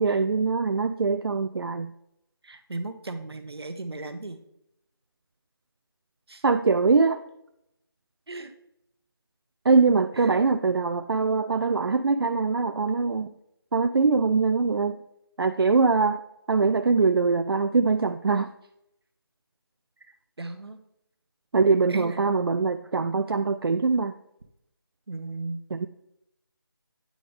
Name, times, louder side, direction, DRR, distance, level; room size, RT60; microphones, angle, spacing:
voice 1, 0.0-1.9 6.4-7.2 9.7-13.3 13.7-15.0 15.4-16.2 16.5-18.5 21.5-24.1 25.7-25.9, right 4 dB, 70° right, 7 dB, 0.4 m, -23 dB
voice 2, 2.4-4.4 6.3-6.4 8.3-8.5 10.1-10.3 20.1-20.8 21.9-22.2 25.1-25.6, right 2 dB, 90° right, 8 dB, 0.9 m, -36 dB
9.1 x 3.8 x 3.5 m, 0.80 s
figure-of-eight pair, 175°, 13 cm